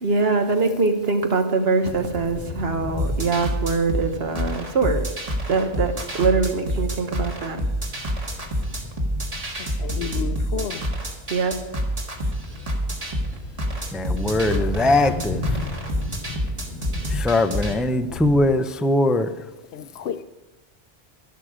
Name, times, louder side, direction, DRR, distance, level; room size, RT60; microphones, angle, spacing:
voice 1, 0.0-5.0 5.5-7.6 8.2-8.3 11.3-11.5, right 4 dB, 70° right, 1.4 m, -23 dB
sound 1, 1.8-18.5, left 3 dB, 45° left, 1.1 m, -36 dB
sound 2, 3.0-17.7, equal, 35° right, 1.7 m, -28 dB
voice 2, 9.6-11.0 19.7-20.2, left 7 dB, 75° left, 0.8 m, -32 dB
voice 3, 13.9-15.6 17.1-19.3, left 2 dB, ahead, 0.3 m, -21 dB
11.5 x 11.0 x 5.0 m
omnidirectional pair, 1.1 m